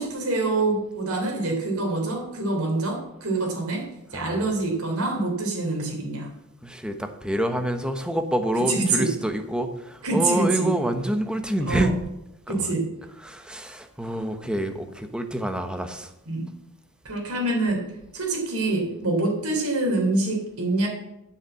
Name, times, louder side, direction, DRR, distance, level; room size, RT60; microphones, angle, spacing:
voice 1, 0.0-6.3 8.6-9.1 10.0-10.7 11.7-11.9 12.5-12.9 16.3-16.5 17.0-17.8 18.1-20.9, right 2 dB, 75° right, 0 dB, 3.4 m, -25 dB
voice 2, 4.1-4.5 6.6-11.9 12.5-12.7 13.2-16.1, right 1 dB, 5° right, 6 dB, 1.0 m, -27 dB
9.7 x 6.5 x 8.3 m, 0.90 s
head